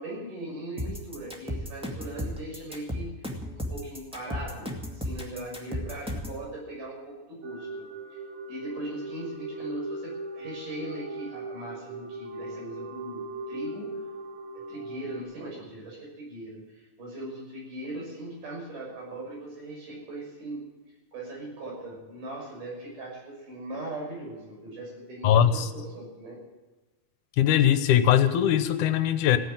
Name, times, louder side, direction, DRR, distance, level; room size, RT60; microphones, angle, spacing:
voice 1, 0.0-3.1 3.5-8.2 8.5-13.9 14.7-20.7 21.1-26.4, right 1 dB, 85° right, -2 dB, 7.8 m, -39 dB
sound 1, 0.8-6.4, left 1 dB, ahead, 1.5 m, -34 dB
sound 2, 7.4-15.2, right 2 dB, 70° right, 2.9 m, -39 dB
voice 2, 25.2-25.7 27.4-29.4, left 10 dB, 80° left, 11 dB, 2.4 m, -21 dB
16.5 x 9.6 x 8.9 m, 1.2 s
omnidirectional pair, 3.6 m